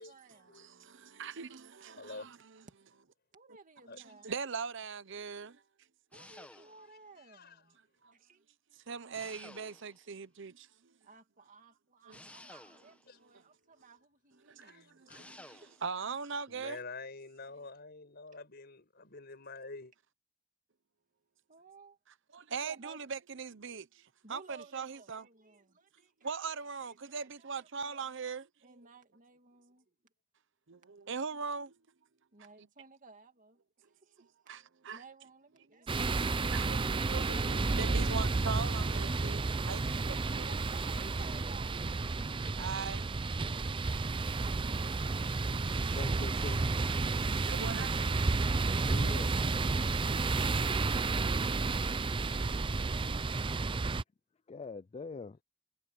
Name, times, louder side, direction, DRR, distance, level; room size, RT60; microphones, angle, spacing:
voice 1, 0.0-0.9 3.3-4.3 6.1-7.8 8.1-8.4 11.0-15.0 15.6-15.7 21.5-22.0 22.5-23.1 24.2-26.5 26.8-28.1 28.6-30.0 32.3-34.3 34.9-36.4 38.9-41.8 44.4-45.6 47.0-47.2, right 4 dB, 40° right, 2.3 m, -57 dB
voice 2, 0.5-2.4 4.2-5.6 8.0-8.1 8.9-10.7 12.1-12.2 14.5-16.8 22.3-23.9 24.3-25.2 26.2-28.5 30.7-31.7 34.5-35.0 36.1-36.2 36.5-37.3 37.7-40.5 42.6-43.1 47.5-47.9, right 5 dB, 65° right, 0.9 m, -40 dB
voice 3, 2.0-2.3 3.9-4.0 6.4-6.7 7.2-7.6 13.1-13.2 14.6-15.3 16.5-19.9 36.9-38.3, left 3 dB, 55° left, 5.3 m, -48 dB
sound 1, 6.1-7.0 9.1-10.1 12.1-13.1 15.1-15.9, left 1 dB, 5° left, 1.4 m, -53 dB
sound 2, 35.9-54.0, right 3 dB, 25° right, 0.5 m, -31 dB
voice 4, 46.0-46.8 48.8-49.3 54.5-55.4, left 4 dB, 30° left, 0.4 m, -43 dB
head